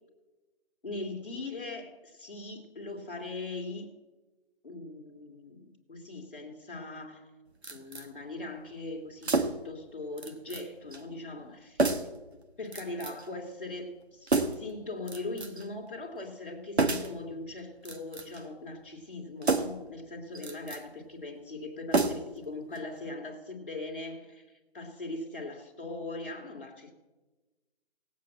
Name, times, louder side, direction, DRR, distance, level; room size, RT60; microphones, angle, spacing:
voice 1, 0.8-3.9 4.6-7.2 7.6-12.1 12.6-26.9, left 2 dB, ahead, -18 dB, 1.1 m, -40 dB
sound 1, 7.6-8.1 9.2-9.7 10.2-10.7 10.9-11.0 11.8-12.2 12.7-13.3 14.3-14.7 15.1-15.7 16.8-17.2 17.8-18.5 19.4-19.9 20.3-20.8 21.9-22.4 22.7-22.8, right 3 dB, 70° right, 1.4 m, -29 dB
17.5 x 8.3 x 7.4 m, 1.2 s
figure-of-eight pair, 175°, 34 cm